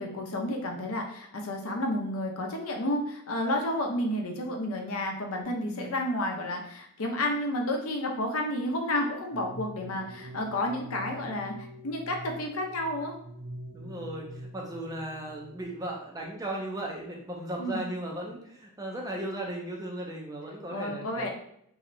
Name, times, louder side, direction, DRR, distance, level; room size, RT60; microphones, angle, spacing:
voice 1, 0.0-11.5 11.8-13.1 17.6-17.9 20.7-21.3, left 1 dB, 75° left, 2 dB, 0.6 m, -31 dB
sound 1, 5.4-6.5 9.3-16.3, right 1 dB, 85° right, 0.7 m, -45 dB
voice 2, 13.7-21.3, right 1 dB, 15° right, 0 dB, 0.4 m, -36 dB
3.1 x 2.7 x 2.6 m, 0.72 s
head